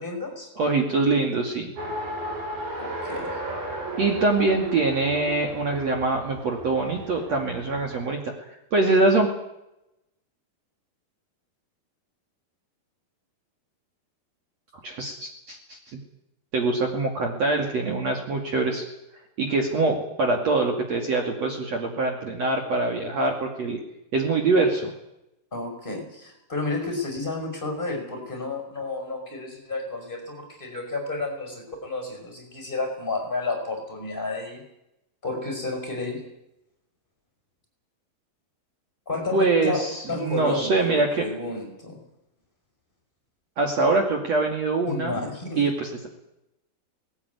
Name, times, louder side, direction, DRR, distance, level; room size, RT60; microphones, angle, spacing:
voice 1, 0.0-0.5 2.8-3.4 25.5-34.6 35.2-36.2 39.1-39.8 40.1-42.0 44.9-45.6, left 3 dB, 15° left, 3 dB, 5.5 m, -31 dB
voice 2, 0.6-1.7 4.0-8.2 8.7-9.3 14.8-16.0 16.5-18.9 19.4-23.8 24.1-24.9 39.3-41.3 43.6-45.2 45.6-46.1, right 3 dB, 50° right, 3 dB, 3.3 m, -24 dB
Race car auto racing, 1.8-8.1, right 1 dB, 85° right, 7.2 m, -35 dB
19.0 x 18.5 x 9.6 m, 0.87 s
omnidirectional pair, 4.2 m